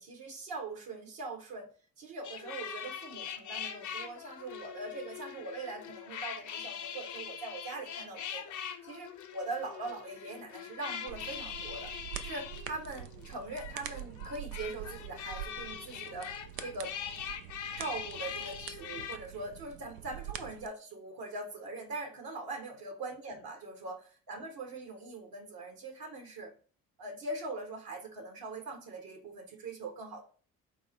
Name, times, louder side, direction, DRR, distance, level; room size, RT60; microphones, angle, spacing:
voice 1, 0.0-1.7 2.0-8.4 8.8-11.9 12.2-16.3 16.6-16.9 17.8-26.5 27.0-30.2, right 2 dB, 55° right, 3 dB, 1.5 m, -42 dB
sound 1, 2.2-19.2, left 8 dB, 45° left, 0.6 m, -42 dB
sound 2, 11.1-20.7, right 12 dB, 80° right, 0.5 m, -45 dB
4.5 x 2.1 x 4.5 m, 0.40 s
figure-of-eight pair, 45°, 41 cm